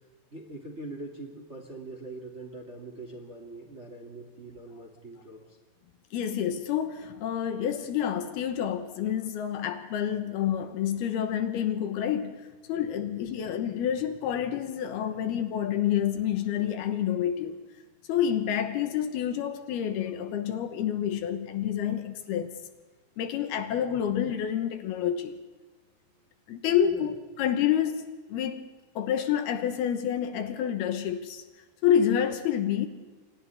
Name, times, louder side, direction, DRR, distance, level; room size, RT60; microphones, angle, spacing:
voice 1, 0.3-5.6 13.0-13.1 26.8-27.1, right 2 dB, 20° right, 2.0 m, -42 dB
voice 2, 6.1-17.5 18.1-22.5 23.2-25.4 26.5-28.7 29.0-31.4 31.8-32.9, left 9 dB, 75° left, 3.0 m, -28 dB
29.5 x 26.0 x 3.6 m
omnidirectional pair, 4.8 m